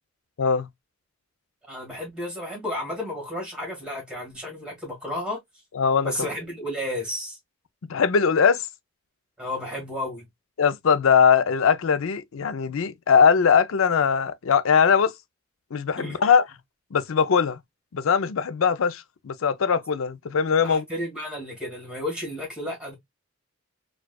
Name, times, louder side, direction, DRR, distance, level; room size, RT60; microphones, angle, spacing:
voice 1, 1.7-5.4 6.0-7.4 9.4-10.3 16.0-16.2 20.6-22.9, left 1 dB, 5° right, 1.9 m, -32 dB
voice 2, 5.7-6.1 7.9-8.7 10.6-15.1 15.7-16.5 16.9-17.6 17.9-20.8, left 6 dB, 70° left, 0.5 m, -21 dB
4.6 x 2.3 x 2.2 m
head